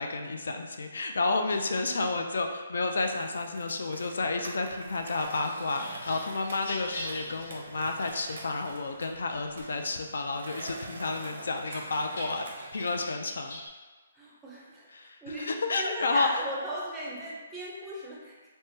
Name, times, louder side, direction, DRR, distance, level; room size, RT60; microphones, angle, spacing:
voice 1, 0.0-12.5 12.7-13.6 14.9-16.4, left 3 dB, 75° left, 4 dB, 0.3 m, -31 dB
Skateboard, 3.0-13.0, right 2 dB, 60° right, 0.6 m, -46 dB
sound 1, 5.7-8.8 9.3-10.2 10.6-13.7, left 1 dB, 55° left, 0.9 m, -43 dB
voice 2, 14.1-15.5 15.8-18.4, right 1 dB, 5° right, -6 dB, 0.4 m, -38 dB
3.5 x 2.0 x 2.6 m, 1.4 s
hypercardioid pair, 170°, 0 cm